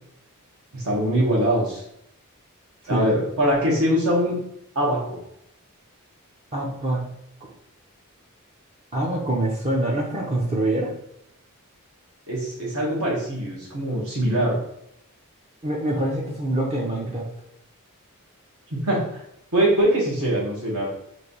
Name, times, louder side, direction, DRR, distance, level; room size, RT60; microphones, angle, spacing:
voice 1, 0.7-1.8 2.9-4.4 4.7-5.2 12.3-14.6 18.7-19.2 19.5-20.9, equal, 70° right, -5 dB, 1.2 m, -22 dB
voice 2, 6.5-7.0 8.9-10.9 15.6-17.3, right 1 dB, 30° right, -2 dB, 0.6 m, -25 dB
3.2 x 2.6 x 3.9 m, 0.77 s
head